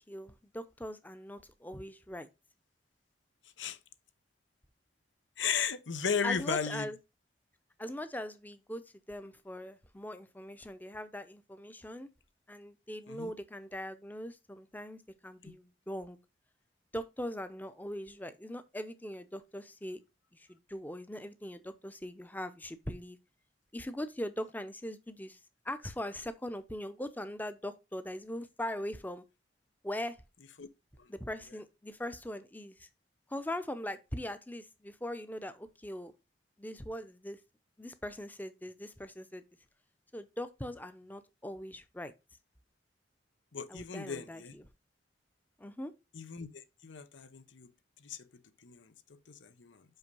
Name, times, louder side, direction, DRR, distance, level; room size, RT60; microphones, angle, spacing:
voice 1, 0.1-2.3 6.2-7.0 7.8-12.1 12.5-16.2 16.9-20.0 20.3-23.2 23.7-25.4 25.6-29.2 29.8-30.2 31.1-32.9 33.3-36.1 36.6-37.4 37.8-39.4 40.1-42.1 43.7-44.7 45.6-45.9, left 1 dB, 10° left, 0.6 m, -41 dB
voice 2, 5.4-6.9 13.1-13.3 30.6-30.7 31.0-31.1 43.5-44.5 46.1-47.7 48.0-48.2 48.6-49.8, left 6 dB, 85° left, 0.8 m, -36 dB
5.6 x 5.4 x 5.3 m
head